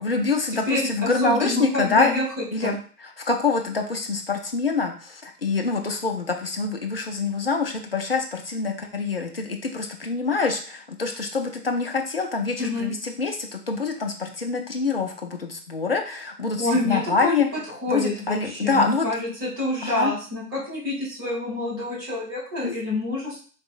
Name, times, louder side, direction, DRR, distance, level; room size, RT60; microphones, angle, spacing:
voice 1, 0.0-2.2 2.5-17.5 17.9-19.1 19.8-20.1 22.6-22.8, left 4 dB, 40° left, 3 dB, 0.5 m, -26 dB
voice 2, 0.7-2.2 2.6-2.8 12.6-12.9 16.6-17.4 17.8-23.5, left 2 dB, 15° right, -8 dB, 1.2 m, -27 dB
4.0 x 3.4 x 2.4 m, 0.41 s
figure-of-eight pair, 145°, 49 cm